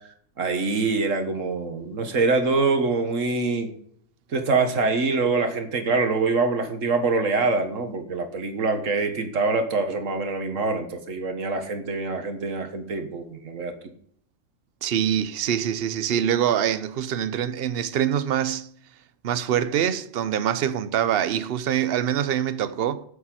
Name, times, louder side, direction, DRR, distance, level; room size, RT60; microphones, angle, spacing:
voice 1, 0.4-3.7 4.3-13.7, right 3 dB, 85° right, 1.8 m, -24 dB
voice 2, 14.8-18.7 19.2-23.0, right 9 dB, 55° right, 0.9 m, -24 dB
8.3 x 7.2 x 7.6 m
omnidirectional pair, 1.3 m